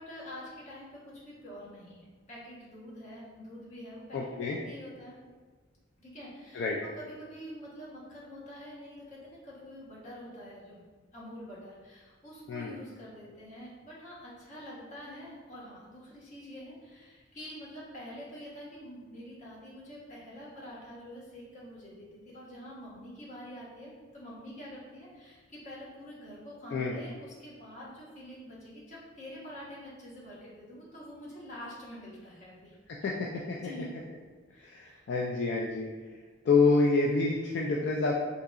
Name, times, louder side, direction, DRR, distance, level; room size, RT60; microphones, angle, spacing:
voice 1, 0.0-5.2 6.0-10.8 11.1-32.7 33.4-33.9 34.5-35.0, equal, 40° left, -6 dB, 0.9 m, -46 dB
voice 2, 4.1-4.6 6.5-6.8 12.5-12.7 26.7-27.0 33.0-33.1 33.5-33.6 34.6-35.9 36.4-38.2, left 3 dB, 65° left, -2 dB, 0.3 m, -27 dB
3.7 x 2.8 x 2.3 m, 1.4 s
head